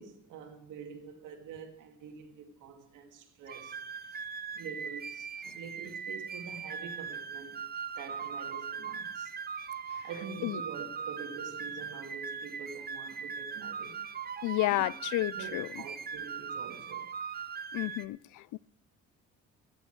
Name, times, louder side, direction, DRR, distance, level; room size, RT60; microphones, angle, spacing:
voice 1, 0.0-5.3 5.5-9.3 10.0-14.1 14.7-14.8 15.3-17.1, right 6 dB, 85° right, 2.2 m, -46 dB
sound 1, 3.5-18.1, right 6 dB, 30° right, 0.6 m, -40 dB
voice 2, 14.4-15.8 17.7-18.6, left 17 dB, 80° left, 0.5 m, -32 dB
15.5 x 10.0 x 4.6 m
cardioid pair, 90°, 30 cm